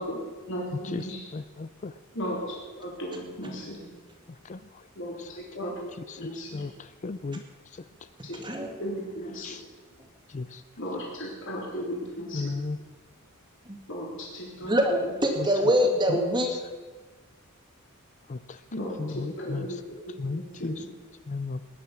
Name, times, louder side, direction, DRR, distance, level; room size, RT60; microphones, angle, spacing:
voice 1, 0.0-1.2 2.1-3.9 5.0-5.9 6.2-6.6 8.2-9.6 10.8-12.5 13.9-15.1 18.7-20.9, equal, 60° left, -3 dB, 3.8 m, -36 dB
voice 2, 1.3-1.9 4.4-4.6 6.1-7.4 9.4-9.6 10.3-10.6 12.3-12.8 15.4-15.5 18.3-18.6 19.0-19.7 20.2-20.8 21.3-21.6, left 3 dB, 35° left, 12 dB, 0.4 m, -34 dB
voice 3, 8.4-8.7 13.7-13.8 14.6-16.5, equal, 20° right, 3 dB, 2.1 m, -24 dB
19.0 x 10.5 x 6.0 m, 1.4 s
head